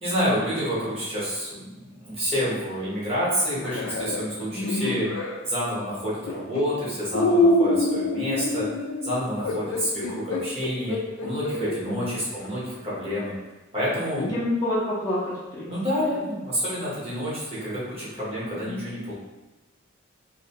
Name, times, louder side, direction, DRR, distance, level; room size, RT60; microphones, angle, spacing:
voice 1, 0.0-1.6 1.9-5.1 5.4-8.6 9.0-13.3 13.7-14.3 15.7-19.1, equal, 30° right, -8 dB, 0.9 m, -28 dB
sound 1, 3.5-5.4 6.3-6.6 7.1-11.8 12.4-12.5 14.2-14.4, left 2 dB, 85° left, 0.4 m, -25 dB
voice 2, 4.6-5.0 11.8-12.1 14.3-15.7 18.6-18.8, left 1 dB, 20° left, -9 dB, 0.6 m, -28 dB
2.6 x 2.1 x 2.8 m, 1.1 s
head